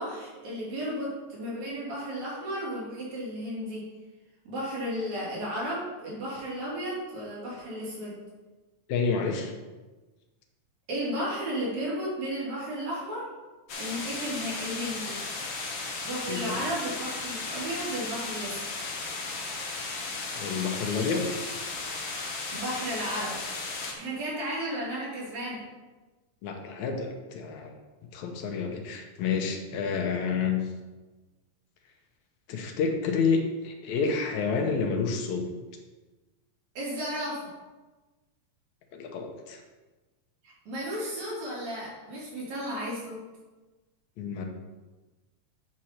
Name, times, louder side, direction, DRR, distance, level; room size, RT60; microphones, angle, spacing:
voice 1, 0.0-3.9 4.5-8.1 10.9-13.3 13.8-15.2 16.0-18.6 22.5-23.4 23.9-25.6 36.8-37.5 40.7-43.2, equal, 70° right, -6 dB, 4.2 m, -34 dB
voice 2, 8.9-9.5 16.3-16.7 20.4-21.3 26.4-27.8 28.1-30.6 32.5-35.5 38.9-39.6 44.2-44.4, left 5 dB, 80° left, 4 dB, 2.3 m, -29 dB
sound 1, 13.7-23.9, left 3 dB, 55° left, 1.5 m, -35 dB
8.4 x 6.3 x 4.4 m, 1.2 s
omnidirectional pair, 3.3 m